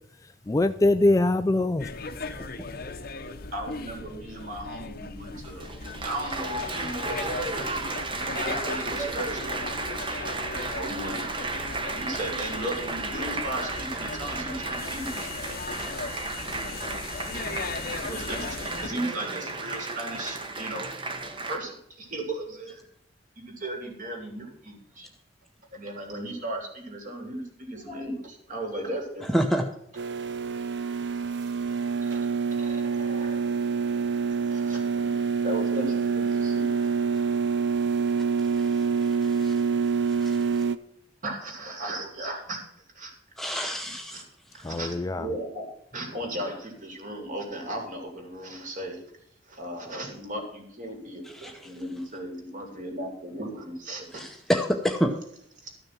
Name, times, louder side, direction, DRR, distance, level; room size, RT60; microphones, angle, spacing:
voice 1, 0.5-1.9 44.6-45.3, left 2 dB, 15° left, 11 dB, 0.3 m, -23 dB
sound 1, 1.8-18.9, left 3 dB, 50° left, 0.8 m, -38 dB
voice 2, 3.5-5.7 6.0-9.6 10.7-11.2 11.9-15.3 18.0-20.9 21.5-22.8 23.3-25.1 25.7-29.3 32.1-32.2 32.6-33.5 34.5-35.1 35.4-36.7 41.2-42.6 42.9-43.1 43.5-44.2 44.5-45.6 45.9-49.0 49.5-54.3 55.6-55.7, right 1 dB, 45° right, 1 dB, 3.4 m, -36 dB
Applause, 5.3-21.6, right 3 dB, 25° right, 1.3 m, -34 dB
voice 3, 29.3-29.6 37.1-37.2 39.2-39.6 40.2-40.4 43.4-44.2 44.6-44.7 51.3-51.5 54.2-55.1, equal, ahead, 3 dB, 0.8 m, -27 dB
sound 2, 30.0-40.8, right 5 dB, 65° right, 0.6 m, -26 dB
13.0 x 6.3 x 6.0 m, 0.71 s
head